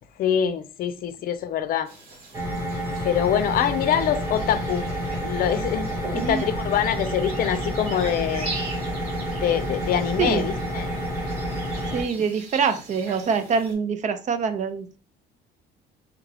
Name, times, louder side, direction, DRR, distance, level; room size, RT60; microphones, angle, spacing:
voice 1, 0.2-1.9 3.0-4.9 5.2-8.5 9.4-10.9, left 9 dB, 60° left, 0.5 m, -24 dB
sound 1, 1.9-13.7, right 2 dB, 65° right, 1.7 m, -41 dB
sound 2, 2.3-12.0, equal, 20° right, 1.1 m, -29 dB
voice 2, 6.1-6.5 10.2-10.5 11.9-15.0, right 6 dB, 45° right, 0.5 m, -25 dB
3.4 x 2.4 x 3.3 m
cardioid pair, 110°, 17 cm